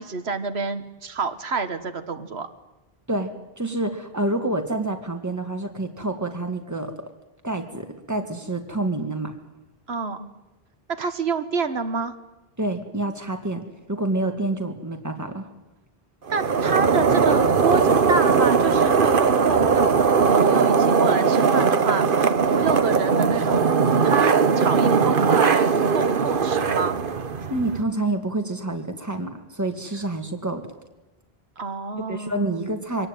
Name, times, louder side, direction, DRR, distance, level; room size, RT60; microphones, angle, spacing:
voice 1, 0.0-2.5 9.9-10.3 10.9-12.1 16.3-23.7 24.0-27.0 31.6-32.6, right 4 dB, 85° right, 9 dB, 1.6 m, -28 dB
voice 2, 3.6-6.9 7.4-9.3 12.6-15.5 27.5-30.7 32.1-33.1, right 2 dB, 15° right, 5 dB, 2.1 m, -28 dB
sound 1, 16.3-27.8, right 5 dB, 60° right, 1.2 m, -19 dB
24.5 x 18.0 x 9.2 m, 1.0 s
omnidirectional pair, 1.0 m